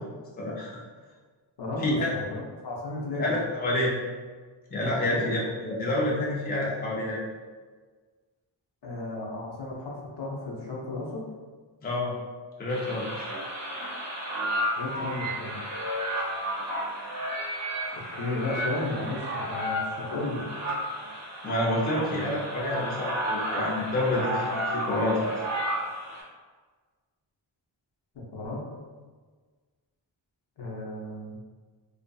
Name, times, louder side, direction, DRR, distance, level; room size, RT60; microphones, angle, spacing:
voice 1, 0.4-0.8 1.8-2.1 3.2-3.9 4.7-7.2 11.8-12.1 12.6-13.3 21.4-25.2, left 1 dB, 20° left, -4 dB, 0.4 m, -28 dB
voice 2, 1.6-2.2 2.6-3.4 5.0-5.2 8.8-11.2 14.8-15.6 17.9-20.4 22.0-22.3 28.3-28.6 30.6-31.4, left 2 dB, 60° left, -3 dB, 0.7 m, -34 dB
sound 1, 12.7-26.2, equal, 35° right, 0.7 m, -32 dB
2.6 x 2.4 x 2.2 m, 1.4 s
wide cardioid pair, 110°, 46 cm